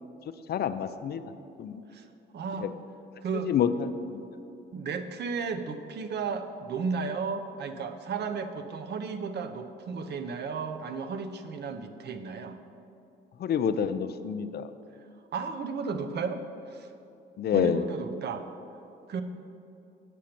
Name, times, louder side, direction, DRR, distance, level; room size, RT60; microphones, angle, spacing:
voice 1, 0.5-1.2 1.6-1.8 2.6-2.7 3.5-4.2 13.4-14.7 17.4-17.8, left 8 dB, 55° left, 11 dB, 0.4 m, -28 dB
voice 2, 2.3-2.7 3.2-3.5 4.7-12.6 15.3-16.9 17.5-18.5 19.1-19.2, right 5 dB, 60° right, 8 dB, 0.6 m, -34 dB
8.3 x 5.1 x 5.9 m, 2.7 s
cardioid pair, 90°, 20 cm